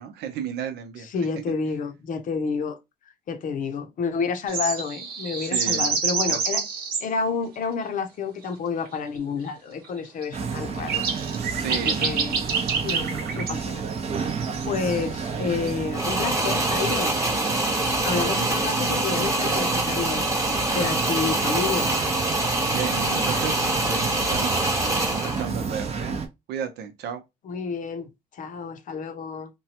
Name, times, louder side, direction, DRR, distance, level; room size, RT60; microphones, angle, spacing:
voice 1, 0.0-1.1 1.5-1.6 5.4-5.9 6.3-6.4 11.3-12.2 22.7-26.2 26.5-27.2, right 7 dB, 80° right, 0.8 m, -34 dB
voice 2, 1.0-2.8 3.3-6.7 7.0-11.1 11.7-12.4 12.8-13.8 14.2-17.1 18.0-20.2 20.7-21.9 27.4-29.5, left 5 dB, 50° left, 0.6 m, -29 dB
sound 1, 4.5-7.0 8.9-9.0 10.2-10.3 10.7-13.6 13.9-15.3 15.7-15.8 18.3-18.4 18.6-18.7 21.0-21.4, right 5 dB, 65° right, 1.0 m, -27 dB
sound 2, 10.3-26.3, right 5 dB, 40° right, 0.6 m, -30 dB
sound 3, 15.9-25.5, right 1 dB, 20° right, 1.0 m, -25 dB
3.0 x 2.2 x 2.9 m
cardioid pair, 110°, 17 cm